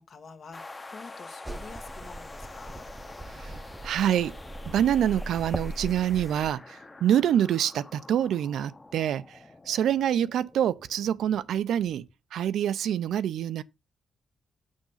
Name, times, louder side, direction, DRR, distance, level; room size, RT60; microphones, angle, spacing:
voice 1, 0.0-2.9, left 5 dB, 55° left, 1.6 m, -48 dB
sound 1, 0.5-12.1, left 3 dB, 25° left, 1.1 m, -47 dB
sound 2, 1.4-6.5, right 1 dB, 15° right, 0.7 m, -39 dB
voice 2, 3.8-4.4 4.7-9.4 9.7-12.1 12.3-13.6, right 10 dB, 85° right, 0.5 m, -26 dB
6.9 x 6.4 x 5.5 m
cardioid pair, 90°, 0 cm